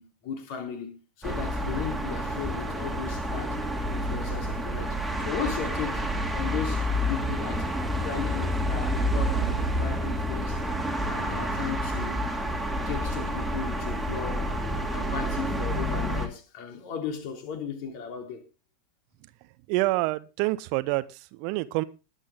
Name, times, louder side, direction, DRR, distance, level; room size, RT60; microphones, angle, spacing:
voice 1, 0.0-3.6 3.9-6.0 6.3-7.7 8.0-10.6 11.0-12.2 12.9-14.5 14.9-18.4, left 6 dB, 45° left, 3.4 m, -36 dB
sound 1, 1.2-16.3, equal, ahead, 2.5 m, -29 dB
voice 2, 19.4-21.8, right 20 dB, 45° right, 0.7 m, -28 dB
20.5 x 8.2 x 3.7 m
figure-of-eight pair, 90°, 0 cm